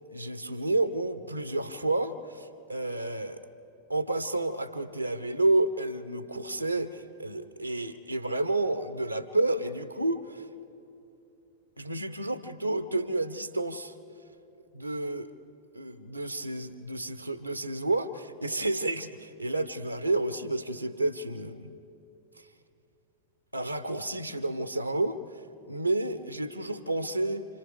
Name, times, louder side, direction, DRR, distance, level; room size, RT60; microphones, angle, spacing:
voice 1, 0.1-3.4 3.9-10.5 11.8-13.9 14.7-15.3 15.7-21.7 23.5-27.4, right 2 dB, 90° right, 11 dB, 0.8 m, -30 dB
29.5 x 26.5 x 3.5 m, 2.8 s
figure-of-eight pair, 90°, 0 cm